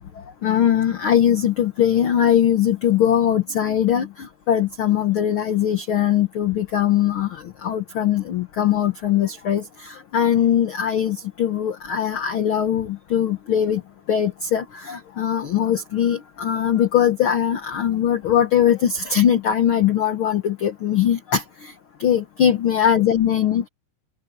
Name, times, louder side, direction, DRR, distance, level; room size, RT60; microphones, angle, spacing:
voice 1, 0.4-13.8 14.1-21.7 22.0-23.7, left 9 dB, 85° left, 1.1 m, -21 dB
omnidirectional pair, 3.9 m